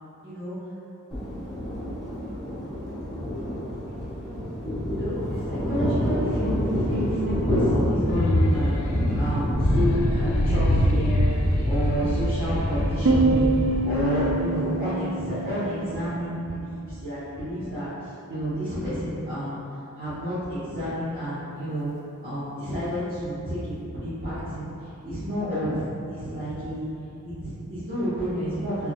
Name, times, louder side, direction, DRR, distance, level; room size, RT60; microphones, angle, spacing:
voice 1, 0.2-0.5 4.8-8.8 9.1-21.9 22.2-26.9 27.2-28.9, equal, 40° right, -15 dB, 1.1 m, -30 dB
Thunder, 1.1-15.9, equal, ahead, 1.0 m, -28 dB
sound 1, 8.0-14.3, left 1 dB, 70° left, 0.4 m, -25 dB
Piano, 13.1-16.5, right 3 dB, 70° right, 0.5 m, -26 dB
4.0 x 2.9 x 2.3 m, 2.7 s
head